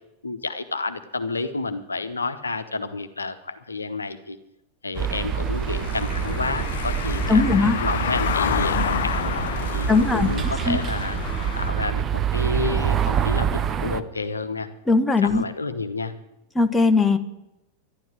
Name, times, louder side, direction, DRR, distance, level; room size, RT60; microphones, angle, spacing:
voice 1, 0.2-4.4 4.8-9.3 9.7-11.2 11.6-14.7 15.2-16.1, left 3 dB, 75° left, 10 dB, 1.1 m, -30 dB
Car passing by / Engine, 4.9-11.7, left 9 dB, 60° left, 0.7 m, -29 dB
sound 1, 5.0-14.0, right 8 dB, 25° right, 0.9 m, -26 dB
voice 2, 7.3-7.8 9.9-10.3 10.7-10.8 14.9-15.4 16.5-17.2, left 4 dB, 10° left, 7 dB, 1.3 m, -19 dB
12.0 x 11.5 x 9.8 m, 0.91 s
figure-of-eight pair, 90°, 0 cm